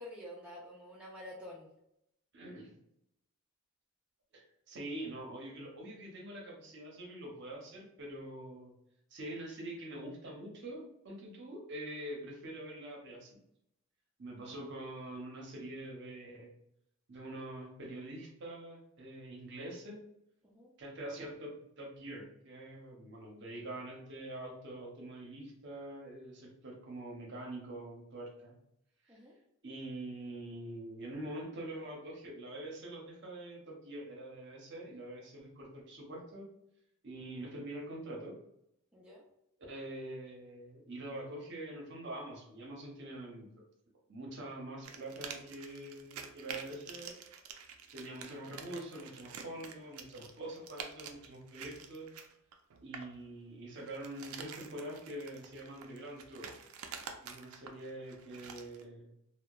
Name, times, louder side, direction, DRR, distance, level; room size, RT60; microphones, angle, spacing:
voice 1, 0.0-1.7 20.4-20.7 29.1-29.3 38.9-39.2, left 1 dB, 5° right, -5 dB, 0.4 m, -48 dB
voice 2, 2.3-2.8 4.3-8.7 9.1-13.4 14.2-16.5 17.1-20.0 20.8-28.6 29.1-29.2 29.6-36.5 37.0-38.4 39.7-43.5 44.1-47.1 47.9-52.1 52.8-56.5 57.2-59.1, right 1 dB, 55° right, -1 dB, 0.7 m, -45 dB
sound 1, 44.8-53.2 53.8-58.8, right 6 dB, 80° right, 0.4 m, -48 dB
2.8 x 2.1 x 2.2 m, 0.80 s
head